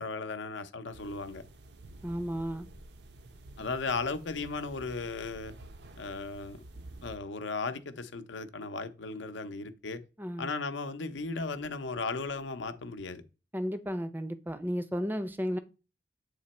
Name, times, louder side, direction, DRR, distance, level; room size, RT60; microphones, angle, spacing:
voice 1, 0.0-1.4 3.6-5.6 6.0-6.6 7.0-10.0 10.4-13.2, left 3 dB, 80° left, 0.7 m, -36 dB
sound 1, 0.9-7.2, right 1 dB, 60° right, 0.6 m, -50 dB
voice 2, 2.0-2.7 10.2-10.5 13.5-15.6, equal, 10° right, 0.5 m, -33 dB
8.0 x 3.0 x 4.2 m
head